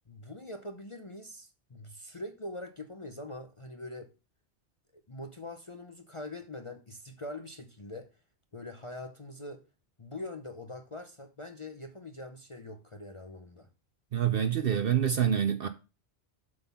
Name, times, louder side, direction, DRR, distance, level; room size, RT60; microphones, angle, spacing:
voice 1, 0.1-4.1 5.1-8.1 8.5-9.6 10.0-13.7, left 1 dB, 30° left, 0.7 m, -43 dB
voice 2, 14.1-15.7, right 9 dB, 60° right, 0.8 m, -26 dB
7.9 x 5.5 x 5.7 m
omnidirectional pair, 1.2 m